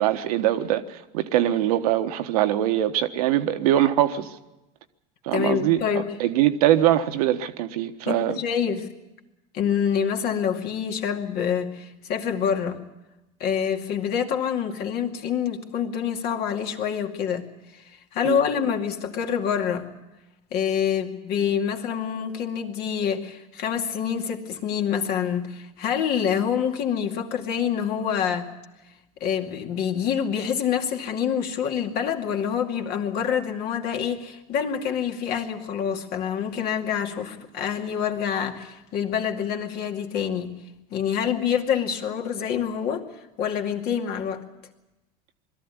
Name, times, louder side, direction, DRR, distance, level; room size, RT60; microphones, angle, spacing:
voice 1, 0.0-4.3 5.2-5.8 6.2-8.4 18.2-18.4, right 12 dB, 80° right, 1.3 m, -22 dB
voice 2, 5.3-6.1 8.1-8.9 9.5-12.8 13.4-17.5 17.7-19.9 20.5-28.5 29.2-40.5 40.9-43.1 43.4-44.4, left 8 dB, 55° left, 2.4 m, -26 dB
21.5 x 14.0 x 9.7 m
supercardioid pair, 100°, 19 cm